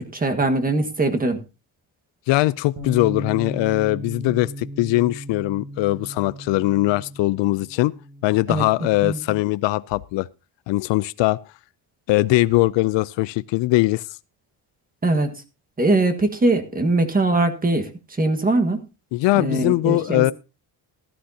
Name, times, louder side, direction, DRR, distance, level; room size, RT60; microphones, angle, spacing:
voice 1, 0.1-1.4 8.5-8.6 9.0-9.2 15.0-15.3 15.8-17.9 18.2-18.8 19.3-20.3, right 2 dB, 20° right, 1.5 m, -21 dB
voice 2, 2.3-7.9 8.2-10.3 10.7-11.4 12.1-14.0 19.1-20.3, left 18 dB, 85° left, 0.5 m, -21 dB
Bass guitar, 2.8-9.0, equal, 55° right, 2.7 m, -36 dB
14.5 x 13.0 x 2.8 m
cardioid pair, 120°, 43 cm